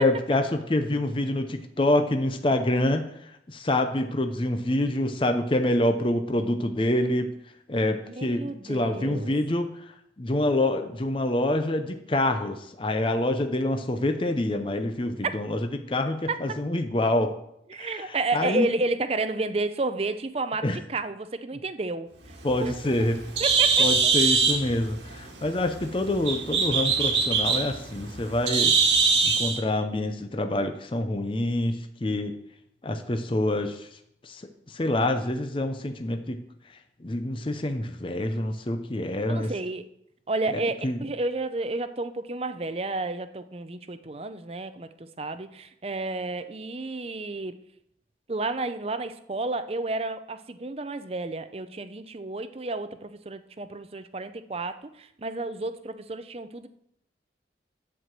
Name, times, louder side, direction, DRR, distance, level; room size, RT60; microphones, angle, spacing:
voice 1, 0.0-3.1 3.5-7.3 7.7-9.8 10.2-17.4 17.8-18.7 20.6-20.8 22.4-23.2 23.8-28.8 29.2-32.3 32.8-33.9 34.2-34.4 34.7-36.4 37.0-39.5 40.5-41.0, left 1 dB, 30° left, 6 dB, 0.6 m, -26 dB
voice 2, 8.0-9.3 16.3-16.4 17.7-22.7 23.0-23.1 23.4-24.1 39.3-39.8 40.3-47.6 48.3-56.7, right 2 dB, 35° right, 11 dB, 0.6 m, -31 dB
Bird, 22.3-29.6, right 5 dB, 85° right, 1.7 m, -23 dB
11.0 x 4.7 x 7.5 m, 0.75 s
head